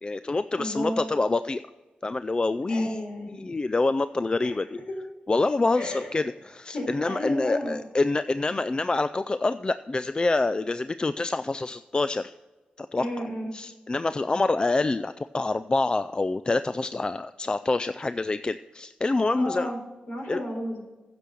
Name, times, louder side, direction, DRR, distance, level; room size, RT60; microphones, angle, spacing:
voice 1, 0.0-1.6 2.0-3.0 3.3-4.8 5.3-12.3 12.8-13.1 13.5-19.7 20.3-20.4, left 3 dB, 30° left, 13 dB, 0.3 m, -26 dB
voice 2, 0.5-1.1 2.7-3.3 4.4-4.5 5.8-6.1 6.7-7.8 12.9-13.5 19.3-19.8 20.1-20.8, equal, 60° left, 0 dB, 3.9 m, -32 dB
10.0 x 6.8 x 6.2 m, 1.2 s
cardioid pair, 65°, 3 cm